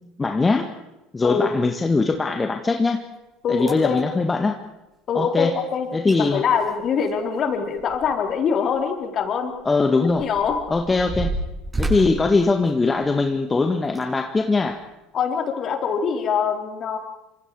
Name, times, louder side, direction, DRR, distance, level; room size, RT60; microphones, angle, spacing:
voice 1, 0.2-0.6 1.1-3.0 3.5-4.6 5.1-5.5 5.9-6.4 9.6-10.2 10.7-11.3 11.8-14.8, left 3 dB, 20° left, 6 dB, 1.7 m, -21 dB
sound 1, 3.1-3.2 3.6-4.0 5.7-5.8 6.1-6.2 6.5-8.3 8.7-8.8 9.5-13.3 13.8-14.1 14.7-14.8, right 2 dB, 15° right, 8.0 m, -31 dB
voice 2, 3.4-4.0 5.1-9.5 10.2-10.6 15.1-17.0, left 6 dB, 40° left, 4 dB, 4.0 m, -24 dB
29.5 x 26.0 x 4.8 m, 0.98 s
figure-of-eight pair, 65°, 0 cm